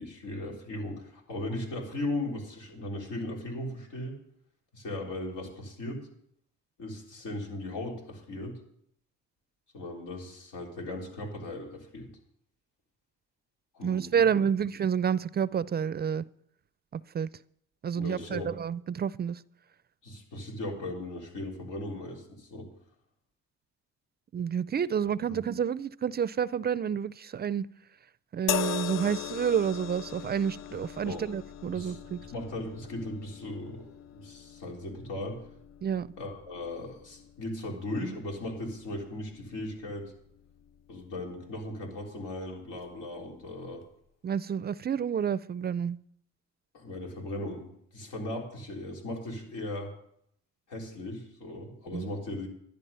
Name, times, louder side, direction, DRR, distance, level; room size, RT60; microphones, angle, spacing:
voice 1, 0.0-4.2 4.7-6.1 6.8-8.6 9.7-12.1 13.7-14.3 18.0-18.5 20.0-22.7 25.3-25.4 31.0-31.2 31.7-32.0 32.3-33.9 34.1-35.4 36.2-40.1 40.9-43.8 46.7-49.9 50.7-52.5, left 1 dB, 90° left, 3.7 m, -37 dB
voice 2, 13.8-16.2 16.9-17.3 17.8-19.4 24.3-27.7 28.3-32.2 35.8-36.1 44.2-46.0 51.9-52.1, right 8 dB, 35° right, 0.4 m, -29 dB
sound 1, 28.5-41.8 42.8-42.9, left 11 dB, 60° left, 0.5 m, -40 dB
11.5 x 10.5 x 5.5 m
cardioid pair, 90°, 30 cm